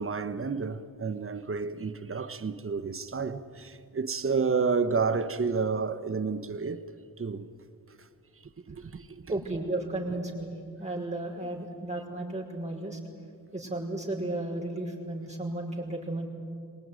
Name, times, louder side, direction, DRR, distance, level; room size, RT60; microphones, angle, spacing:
voice 1, 0.0-6.8 7.2-7.5 8.0-8.1 8.7-9.3, right 5 dB, 35° right, 1.3 m, -30 dB
voice 2, 9.3-13.0 13.5-16.3, right 2 dB, 15° right, 5.4 m, -34 dB
23.0 x 18.5 x 9.7 m
cardioid pair, 55°, 39 cm